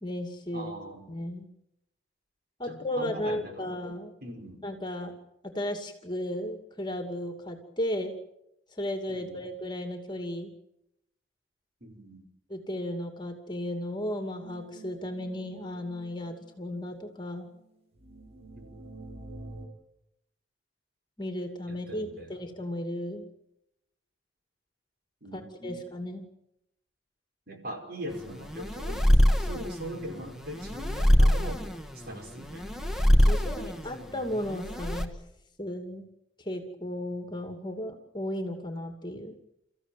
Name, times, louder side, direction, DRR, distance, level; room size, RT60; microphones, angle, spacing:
voice 1, 0.0-0.7 1.1-1.5 2.6-4.1 4.6-5.1 5.4-8.1 8.7-10.5 12.5-17.5 21.2-23.3 25.3-26.2 33.2-35.1 35.6-36.1 36.4-39.4, left 1 dB, 25° left, 5 dB, 2.5 m, -35 dB
voice 2, 0.5-1.1 2.6-3.8 4.2-4.6 9.1-9.5 11.8-12.3 18.5-18.7 21.7-22.4 25.2-25.9 27.5-32.8 33.2-33.8, right 1 dB, 50° right, 3 dB, 5.3 m, -41 dB
sound 1, 14.4-17.7 17.9-19.7, right 1 dB, 30° right, 5.5 m, -47 dB
sound 2, 28.1-35.1, equal, ahead, 1.6 m, -25 dB
30.0 x 15.0 x 9.2 m, 0.84 s
head